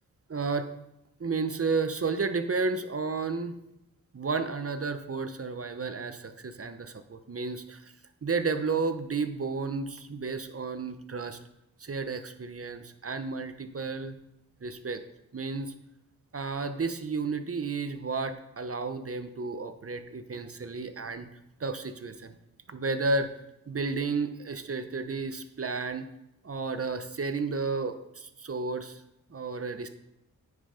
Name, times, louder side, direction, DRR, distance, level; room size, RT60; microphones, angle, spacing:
voice 1, 0.3-0.7 1.2-3.6 4.1-7.9 8.2-11.4 11.8-14.2 14.6-15.0 15.3-15.7 16.3-21.3 21.6-22.3 22.7-23.3 23.7-26.1 26.4-29.0 29.3-29.9, right 4 dB, 40° right, 9 dB, 0.8 m, -32 dB
9.5 x 5.4 x 5.1 m, 0.86 s
wide cardioid pair, 70°, 34 cm